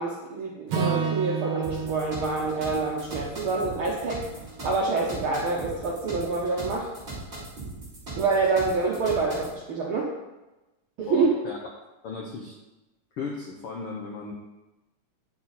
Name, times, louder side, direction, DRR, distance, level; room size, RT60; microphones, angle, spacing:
voice 1, 0.0-4.2 4.6-6.9 8.2-10.1 11.0-11.3, right 3 dB, 80° right, -3 dB, 1.1 m, -27 dB
Acoustic guitar / Strum, 0.7-5.0, right 6 dB, 50° right, 2.3 m, -32 dB
sound 1, 1.6-9.5, right 3 dB, 20° right, 3.4 m, -39 dB
voice 2, 11.1-11.6 12.0-12.6 13.2-14.3, left 4 dB, 90° left, -1 dB, 1.2 m, -36 dB
9.9 x 6.2 x 4.1 m, 1.0 s
omnidirectional pair, 3.9 m